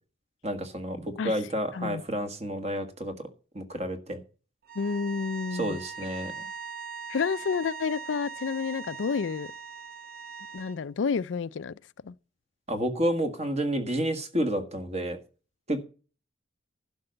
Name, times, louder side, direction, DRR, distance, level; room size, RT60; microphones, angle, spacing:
voice 1, 0.4-3.1 3.5-4.2 5.5-6.5 12.7-15.2 15.7-15.8, right 1 dB, 35° right, 1.7 m, -30 dB
sound 1, 4.6-10.8, right 5 dB, 50° right, 1.0 m, -41 dB
voice 2, 4.8-5.8 7.1-9.5 10.5-11.8 12.0-12.1, left 5 dB, 75° left, 0.4 m, -30 dB
11.5 x 5.4 x 7.8 m
head